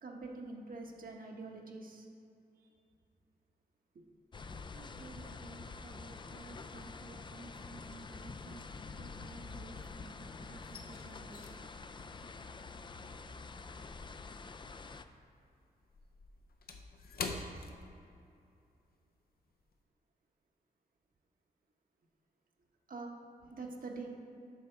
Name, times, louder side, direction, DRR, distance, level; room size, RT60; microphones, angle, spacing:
voice 1, 0.0-2.1 2.6-2.7 3.9-4.0 22.9-23.1 23.5-24.2, right 3 dB, 60° right, 1 dB, 1.1 m, -45 dB
sound 1, 4.3-15.1, left 4 dB, 30° left, 0.4 m, -47 dB
voice 2, 4.7-8.7 9.0-11.7, right 3 dB, 35° right, 2 dB, 0.5 m, -54 dB
sound 2, 7.2-7.7 8.0-10.0 10.3-14.9 15.2-18.5 18.8-19.0 19.5-19.8, left 4 dB, 70° left, 0.7 m, -47 dB
8.3 x 5.7 x 4.5 m, 2.6 s
cardioid pair, 80°, 17 cm